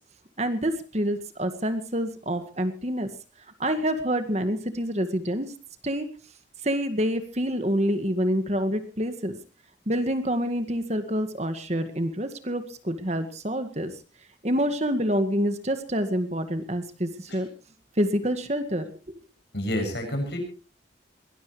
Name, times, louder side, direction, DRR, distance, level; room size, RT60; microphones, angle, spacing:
voice 1, 0.4-3.1 3.6-5.5 5.8-6.1 6.6-9.4 9.9-13.9 14.4-17.5 18.0-19.2, equal, 35° right, 8 dB, 1.9 m, -27 dB
voice 2, 19.5-20.4, left 1 dB, 60° left, 4 dB, 7.8 m, -29 dB
22.5 x 19.0 x 3.3 m, 0.37 s
head